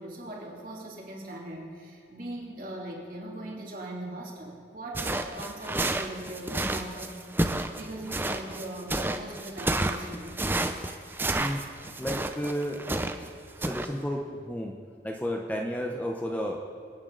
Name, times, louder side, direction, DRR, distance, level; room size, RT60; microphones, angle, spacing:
voice 1, 0.0-7.1 7.8-10.4 13.5-13.7, right 1 dB, 50° right, -3 dB, 3.0 m, -40 dB
sound 1, 4.9-13.3 13.6-13.9, right 2 dB, 10° right, 0.6 m, -30 dB
voice 2, 11.3-11.6 12.0-12.8 13.6-14.7 15.0-16.6, equal, 10° left, 1 dB, 0.9 m, -32 dB
27.0 x 9.9 x 4.0 m, 2.1 s
head